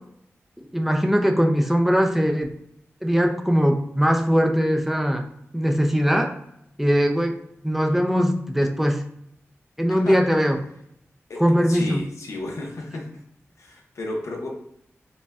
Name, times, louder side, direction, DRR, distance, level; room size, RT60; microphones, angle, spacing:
voice 1, 0.7-2.5 3.0-5.2 5.5-6.3 6.8-7.3 7.6-9.0 9.8-10.6 11.4-12.0, equal, 5° right, 3 dB, 0.4 m, -20 dB
voice 2, 11.7-13.1 13.6-14.5, left 2 dB, 85° left, 0 dB, 0.7 m, -32 dB
5.0 x 2.2 x 2.4 m, 0.75 s
wide cardioid pair, 75°, 5 cm